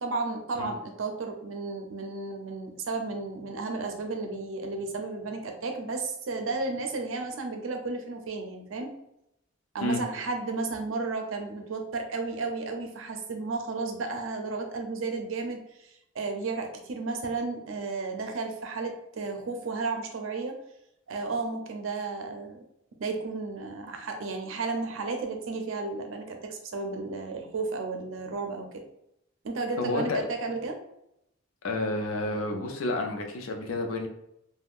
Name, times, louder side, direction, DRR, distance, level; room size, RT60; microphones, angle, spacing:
voice 1, 0.0-8.9 9.7-20.6 21.1-22.6 23.0-28.8 29.4-30.8, right 3 dB, 70° right, 4 dB, 0.5 m, -33 dB
voice 2, 29.8-30.3 31.6-34.1, left 2 dB, 75° left, 3 dB, 0.5 m, -30 dB
3.5 x 2.2 x 2.4 m, 0.80 s
head